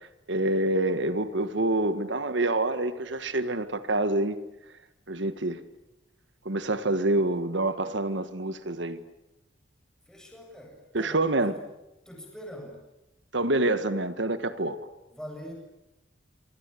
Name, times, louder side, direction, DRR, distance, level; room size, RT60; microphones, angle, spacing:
voice 1, 0.3-4.4 5.1-5.6 6.4-9.0 10.9-11.6 13.3-14.8, right 2 dB, 65° right, 1.5 m, -27 dB
voice 2, 10.1-11.5 12.0-12.8 15.1-15.5, equal, 5° left, 8.0 m, -43 dB
26.5 x 25.5 x 8.4 m
head